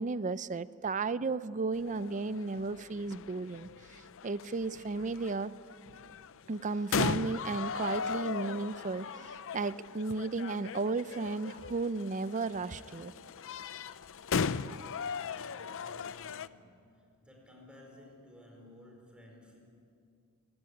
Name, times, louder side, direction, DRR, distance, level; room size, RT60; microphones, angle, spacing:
voice 1, 0.0-3.7 4.2-5.5 6.5-13.1, right 3 dB, 35° right, 16 dB, 0.5 m, -34 dB
sound 1, 1.8-16.5, left 5 dB, 60° left, 0.6 m, -38 dB
voice 2, 14.3-19.6, left 1 dB, 5° right, 0 dB, 4.7 m, -56 dB
27.0 x 15.0 x 9.9 m, 2.4 s
head